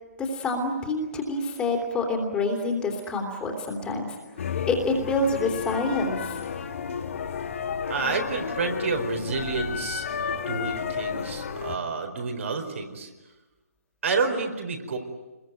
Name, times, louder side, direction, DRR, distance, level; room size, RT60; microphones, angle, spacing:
voice 1, 0.2-4.1 4.7-6.4, left 2 dB, 10° left, 1 dB, 3.2 m, -27 dB
sound 1, 4.4-11.8, left 6 dB, 55° left, 2.1 m, -32 dB
voice 2, 7.9-10.0 10.3-13.1 14.0-15.0, right 4 dB, 55° right, 4 dB, 4.5 m, -29 dB
25.5 x 22.0 x 9.1 m, 1.1 s
figure-of-eight pair, 150°, 8 cm